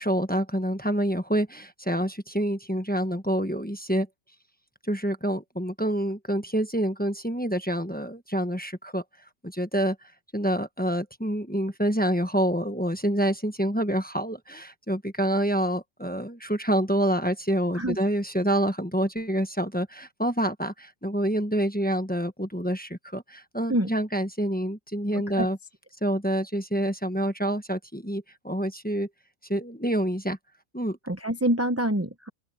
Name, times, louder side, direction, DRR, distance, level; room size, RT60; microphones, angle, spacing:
voice 1, 0.0-4.1 4.9-9.0 9.4-10.0 10.3-25.6 26.0-29.1 29.5-30.4 30.7-31.0, right 1 dB, 5° left, 1.2 m, -27 dB
voice 2, 25.1-25.5 31.0-32.3, right 1 dB, 10° right, 0.8 m, -26 dB
open air
omnidirectional pair, 1.5 m